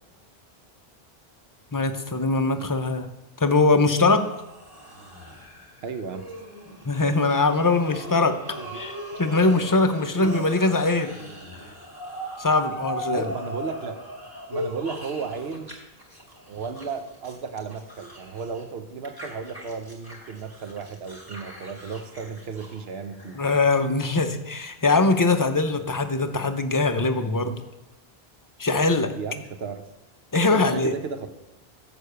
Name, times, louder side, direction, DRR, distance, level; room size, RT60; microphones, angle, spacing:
voice 1, 1.7-3.1 3.4-4.2 6.9-8.3 8.7-11.2 12.4-13.2 23.4-27.6 28.6-29.1 30.3-30.9, left 3 dB, 30° left, 7 dB, 0.4 m, -22 dB
sound 1, 4.2-15.7 16.0-18.6 19.0-23.5, right 1 dB, 20° right, 1.7 m, -38 dB
voice 2, 5.8-6.2 8.6-8.8 13.1-14.0 14.5-15.7 16.5-23.4 27.3-27.6 29.1-29.9 30.5-31.3, right 5 dB, 75° right, 8 dB, 1.0 m, -34 dB
6.9 x 6.5 x 6.6 m, 0.95 s
omnidirectional pair, 1.1 m